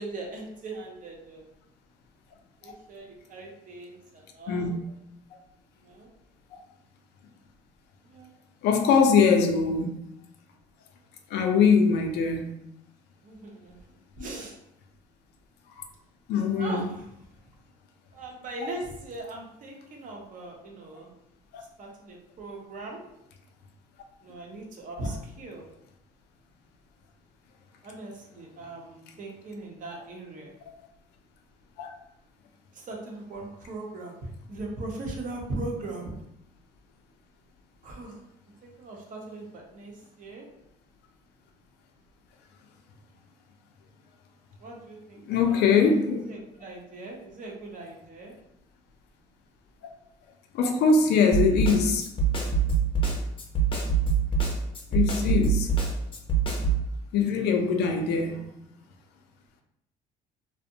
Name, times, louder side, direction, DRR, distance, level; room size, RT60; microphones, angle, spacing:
voice 1, 0.0-1.5 2.6-4.8 5.8-6.1 8.1-8.3 13.2-13.8 14.2-14.6 16.5-17.1 18.1-21.1 21.8-23.0 24.2-25.6 27.8-30.5 32.7-36.1 37.8-38.2 38.6-40.5 44.6-45.2 45.5-45.9 46.3-48.3 58.1-58.4, right 2 dB, 50° right, 0.7 m, -39 dB
voice 2, 8.6-9.9 11.3-12.5 14.2-14.3 16.3-16.9 18.6-18.7 21.5-21.6 31.8-31.9 45.3-46.3 50.5-52.0 54.9-55.7 57.1-58.5, left 5 dB, 80° left, 0.4 m, -22 dB
Snare drum, 51.3-56.8, right 5 dB, 30° left, 0.6 m, -24 dB
2.5 x 2.1 x 2.7 m
cardioid pair, 110°, 17 cm